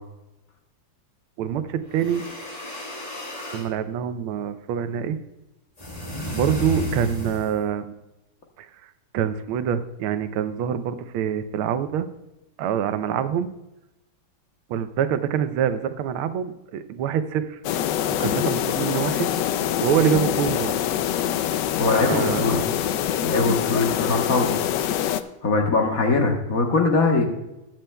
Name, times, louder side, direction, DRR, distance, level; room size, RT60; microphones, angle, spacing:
voice 1, 1.4-2.2 3.5-5.2 6.3-7.9 8.6-12.1 12.6-13.5 14.7-17.6 18.2-20.7 22.1-22.6, right 9 dB, 85° right, 11 dB, 1.5 m, -25 dB
sound 1, 1.9-3.7 5.8-7.7, equal, 20° left, 1.4 m, -32 dB
sound 2, 17.6-25.2, left 10 dB, 75° left, 1.1 m, -25 dB
voice 2, 21.8-22.7 23.2-24.6 24.9-25.0 25.4-27.2, left 3 dB, 50° left, 2 dB, 1.4 m, -22 dB
20.5 x 7.6 x 2.2 m, 0.95 s
omnidirectional pair, 2.3 m